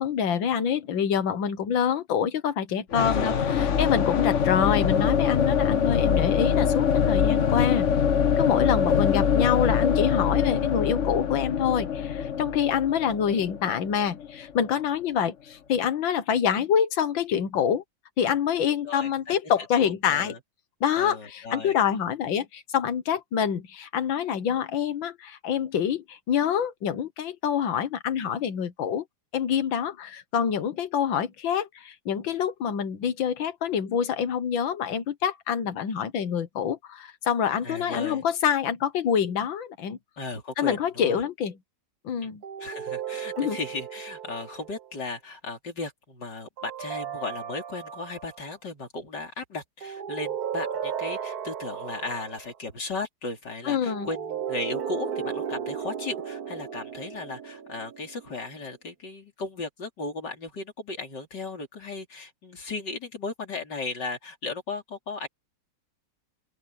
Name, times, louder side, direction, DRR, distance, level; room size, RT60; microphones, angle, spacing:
voice 1, 0.0-7.9 8.4-17.8 18.2-20.3 20.8-29.0 29.3-40.0 40.6-41.6 42.0-42.4 43.4-43.6 53.7-54.1, left 8 dB, 80° left, 2.0 m, -26 dB
sound 1, 2.9-14.7, left 7 dB, 45° left, 1.1 m, -24 dB
voice 2, 3.0-3.5 18.9-19.4 19.8-20.4 21.0-21.8 37.6-38.2 40.2-41.2 42.2-42.3 42.6-65.3, left 3 dB, 65° left, 4.1 m, -36 dB
sound 2, 42.4-44.9 46.6-48.4 49.8-52.5 53.9-58.4, right 8 dB, 55° right, 1.6 m, -35 dB
open air
omnidirectional pair, 2.1 m